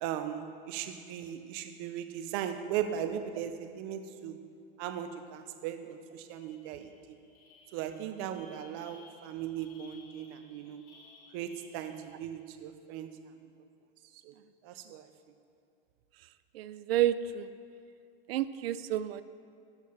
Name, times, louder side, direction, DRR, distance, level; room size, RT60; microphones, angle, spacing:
voice 1, 0.0-4.4 4.8-7.2 7.7-10.8 11.3-13.1 14.2-14.3 14.6-15.1, right 10 dB, 25° right, 9 dB, 0.3 m, -38 dB
sound 1, 5.6-5.7 6.0-12.4, left 3 dB, 55° left, 2.2 m, -60 dB
voice 2, 16.5-17.6 18.3-19.2, right 12 dB, 85° right, 14 dB, 0.5 m, -30 dB
12.5 x 5.7 x 4.2 m, 2.4 s
supercardioid pair, 160°, 29 cm